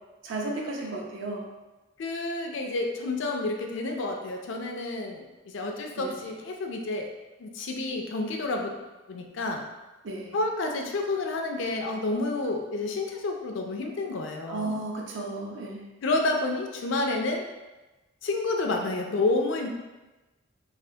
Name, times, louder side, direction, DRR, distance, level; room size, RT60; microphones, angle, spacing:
voice 1, 0.2-1.4 6.0-6.1 10.0-10.4 14.5-15.9, right 2 dB, 65° right, 0 dB, 0.5 m, -34 dB
voice 2, 2.0-7.1 7.4-8.8 9.1-9.6 10.3-14.8 16.0-17.4 18.2-19.7, left 2 dB, 65° left, 3 dB, 0.4 m, -29 dB
3.2 x 2.4 x 2.7 m, 1.1 s
head